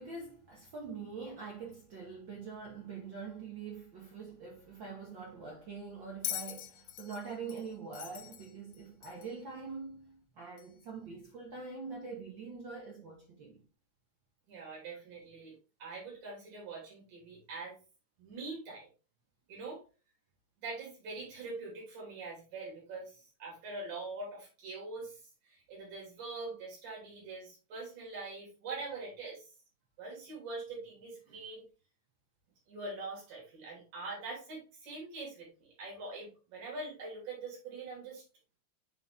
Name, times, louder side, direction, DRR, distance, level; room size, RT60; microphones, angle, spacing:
voice 1, 0.0-13.6 14.9-15.0, right 4 dB, 55° right, 1.3 m, -44 dB
Bell, 6.2-9.4 10.6-10.7, left 12 dB, 80° left, 1.5 m, -42 dB
voice 2, 14.5-15.5 15.8-17.8 18.2-18.9 19.5-19.8 20.6-25.2 25.4-29.4 30.0-31.7 32.7-38.2, right 3 dB, 80° right, 4.6 m, -43 dB
8.2 x 3.6 x 3.5 m
omnidirectional pair, 3.4 m